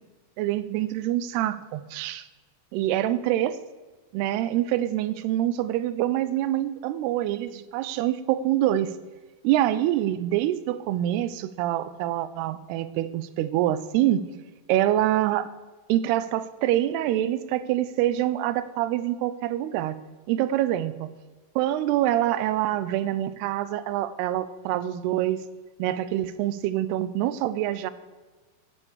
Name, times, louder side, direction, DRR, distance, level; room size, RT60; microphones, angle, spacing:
voice 1, 0.4-2.3 2.7-3.6 4.1-8.9 9.4-14.2 14.7-15.5 15.9-20.0 20.3-20.9 21.6-25.4 25.8-27.9, right 13 dB, 85° right, 15 dB, 2.6 m, -25 dB
9.8 x 8.2 x 7.2 m, 1.3 s
omnidirectional pair, 4.7 m